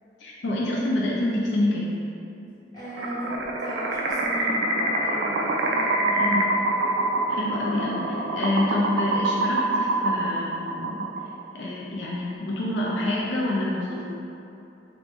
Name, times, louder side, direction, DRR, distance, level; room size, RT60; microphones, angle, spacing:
voice 1, 0.2-1.9 6.1-6.6 7.3-11.0 11.5-14.0, left 1 dB, 75° left, -4 dB, 0.4 m, -27 dB
voice 2, 2.7-6.4, equal, 25° left, -11 dB, 1.0 m, -36 dB
sound 1, 2.9-11.4, right 2 dB, 85° right, 0.4 m, -25 dB
3.0 x 2.5 x 3.3 m, 2.8 s
head